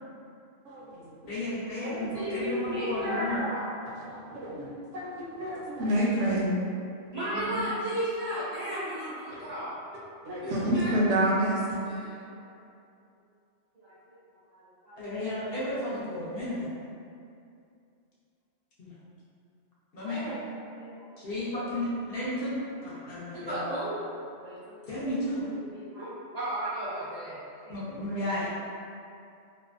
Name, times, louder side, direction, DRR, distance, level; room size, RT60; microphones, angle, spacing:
voice 1, 0.6-1.3 4.1-6.5 9.3-9.4 10.3-11.8, right 1 dB, 75° right, -5 dB, 0.9 m, -28 dB
voice 2, 1.2-3.4 7.3-7.6 15.0-16.7 18.8-18.9 19.9-20.3 21.2-23.7 24.9-25.5 27.7-28.5, left 1 dB, 60° left, -9 dB, 0.7 m, -33 dB
voice 3, 1.8-3.7 7.1-9.8 10.4-10.9 11.9-12.5 13.7-13.9 14.5-15.0 16.4-16.6 20.0-20.4 20.8-21.4 22.9-23.0 23.3-23.9 24.4-24.9 25.5-26.1 26.3-27.4 27.6-28.0, equal, 90° right, -11 dB, 0.3 m, -35 dB
2.6 x 2.1 x 2.4 m, 2.5 s
omnidirectional pair, 1.3 m